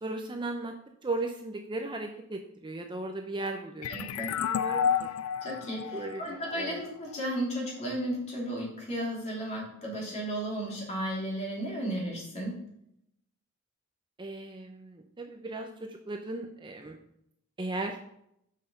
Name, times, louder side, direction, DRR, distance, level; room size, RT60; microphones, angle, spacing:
voice 1, 0.0-0.7 1.0-4.1 4.4-4.9 5.9-6.2 6.5-6.8 14.2-17.0 17.6-18.0, right 2 dB, 20° right, 3 dB, 0.6 m, -36 dB
sound 1, 3.8-7.2, left 7 dB, 75° left, 0.4 m, -31 dB
voice 2, 3.9-4.3 5.4-12.5, right 1 dB, 30° left, -4 dB, 3.1 m, -34 dB
6.5 x 5.7 x 5.3 m, 0.77 s
head